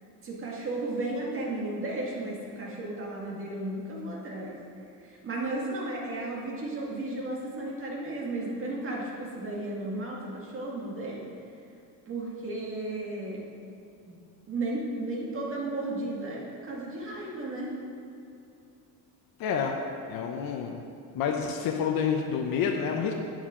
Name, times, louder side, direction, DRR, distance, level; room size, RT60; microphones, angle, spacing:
voice 1, 0.2-4.6 5.0-11.2 12.1-13.4 14.1-14.2 14.5-17.7, right 2 dB, 35° right, -3 dB, 2.0 m, -34 dB
voice 2, 19.4-19.8 20.1-20.9 21.1-23.1, left 7 dB, 65° left, 2 dB, 0.8 m, -28 dB
11.0 x 9.0 x 3.7 m, 2.6 s
cardioid pair, 165°, 37 cm